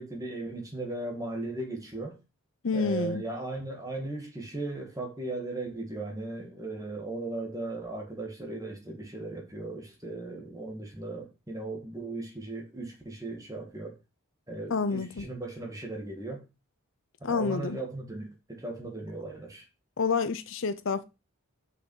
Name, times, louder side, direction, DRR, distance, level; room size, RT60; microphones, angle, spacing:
voice 1, 0.0-2.2 2.7-14.0 14.5-16.4 17.3-19.7, right 2 dB, 15° right, 2.0 m, -37 dB
voice 2, 2.6-3.2 14.7-15.3 17.2-17.8 20.0-21.0, left 5 dB, 60° left, 0.6 m, -28 dB
6.3 x 5.5 x 5.5 m
head